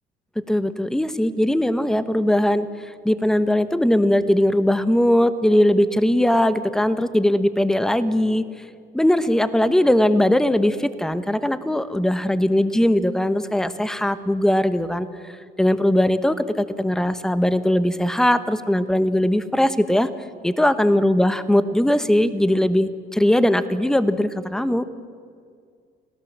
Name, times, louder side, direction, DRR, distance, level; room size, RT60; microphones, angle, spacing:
voice 1, 0.5-8.4 8.9-15.1 15.6-20.1 20.4-24.9, left 1 dB, 5° left, 12 dB, 1.0 m, -20 dB
25.5 x 17.5 x 7.3 m, 2.1 s
cardioid pair, 110°, 17 cm